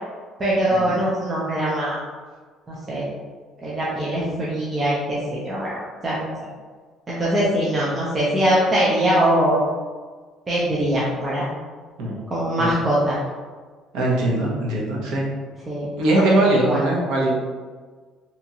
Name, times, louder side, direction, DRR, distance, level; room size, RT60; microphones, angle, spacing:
voice 1, 0.4-2.0 2.7-3.0 3.6-6.3 7.1-9.6 10.5-11.5 12.3-13.2 15.7-15.9 16.3-16.8, right 1 dB, 20° right, -7 dB, 0.5 m, -22 dB
voice 2, 13.9-15.3 16.0-17.6, right 1 dB, 75° right, -3 dB, 0.7 m, -21 dB
2.8 x 2.4 x 2.7 m, 1.5 s
cardioid pair, 160°, 0 cm